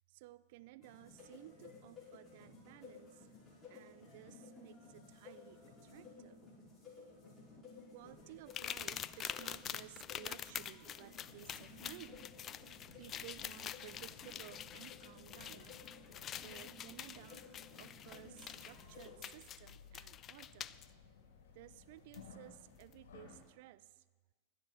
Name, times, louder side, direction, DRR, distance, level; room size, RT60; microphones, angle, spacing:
voice 1, 0.1-3.3 3.7-6.4 7.9-12.3 13.0-15.8 16.3-17.4 17.8-20.8 21.5-24.0, right 16 dB, 50° right, 15 dB, 0.5 m, -56 dB
sound 1, 0.8-19.1, left 4 dB, 10° left, 5.5 m, -57 dB
sound 2, 8.5-20.9 22.1-22.2 22.8-22.9, left 10 dB, 30° left, 0.4 m, -46 dB
sound 3, 11.1-23.4, left 5 dB, 60° left, 2.9 m, -61 dB
16.5 x 11.5 x 4.4 m, 1.3 s
figure-of-eight pair, 90°, 0 cm